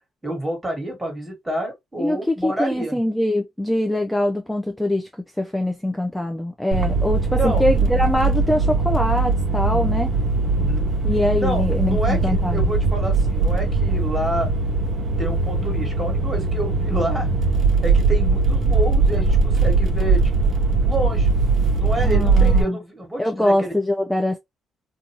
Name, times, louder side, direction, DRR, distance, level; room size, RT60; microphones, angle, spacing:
voice 1, 0.2-3.0 7.4-7.6 9.7-10.0 10.6-10.9 11.4-14.5 15.2-17.3 17.8-20.5 20.8-21.4 21.8-23.7, right 1 dB, 15° right, 1.4 m, -28 dB
voice 2, 2.0-5.1 5.4-10.1 11.0-12.7 22.0-22.8 23.2-24.4, left 1 dB, 5° left, 0.4 m, -23 dB
sound 1, 6.7-22.6, right 3 dB, 55° right, 0.6 m, -20 dB
2.6 x 2.3 x 2.8 m
cardioid pair, 90°, 0 cm